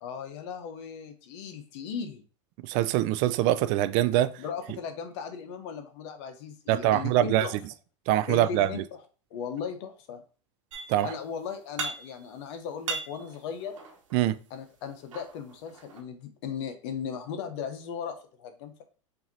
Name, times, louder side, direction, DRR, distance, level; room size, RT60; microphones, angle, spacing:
voice 1, 0.0-2.2 4.4-7.6 8.3-9.0 9.3-10.2 11.0-13.7 14.5-18.8, left 7 dB, 60° left, 0.8 m, -37 dB
voice 2, 2.6-4.3 6.7-7.5 8.1-8.7 10.9-11.1 14.1-14.4, right 13 dB, 50° right, 0.4 m, -23 dB
sound 1, 10.7-11.2 11.5-12.4 12.7-14.2 14.9-16.0, right 4 dB, 80° right, 1.1 m, -38 dB
5.7 x 2.7 x 2.7 m
hypercardioid pair, 95°, 16 cm